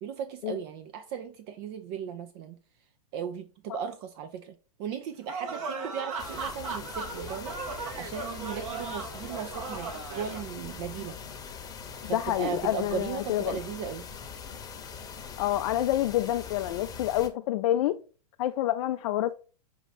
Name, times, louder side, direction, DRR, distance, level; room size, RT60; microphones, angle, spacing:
voice 1, 0.0-2.6 3.1-7.5 8.0-11.2 12.1-14.1, right 8 dB, 40° right, 0.4 m, -37 dB
sound 1, 5.3-10.4, right 4 dB, 60° right, 1.1 m, -37 dB
sound 2, 6.2-17.3, left 6 dB, 20° left, 0.9 m, -42 dB
voice 2, 12.1-13.6 15.4-18.0 18.4-19.3, left 13 dB, 55° left, 0.4 m, -28 dB
5.4 x 2.3 x 4.1 m
hypercardioid pair, 120°, 20 cm